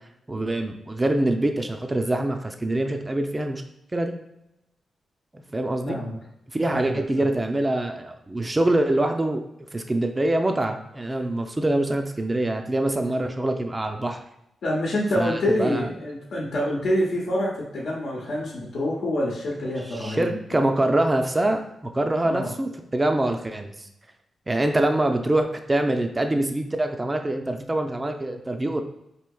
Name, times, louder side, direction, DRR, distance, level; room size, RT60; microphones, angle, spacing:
voice 1, 0.3-3.6 3.9-4.1 5.3-6.0 6.5-9.4 9.7-14.2 15.2-15.9 19.9-23.9 24.5-28.8, right 1 dB, 20° right, 5 dB, 0.3 m, -24 dB
voice 2, 5.9-6.2 6.7-7.0 14.6-20.6 22.2-22.5, left 1 dB, 70° left, -4 dB, 0.8 m, -26 dB
4.4 x 2.7 x 2.3 m, 0.83 s
cardioid pair, 85°, 0 cm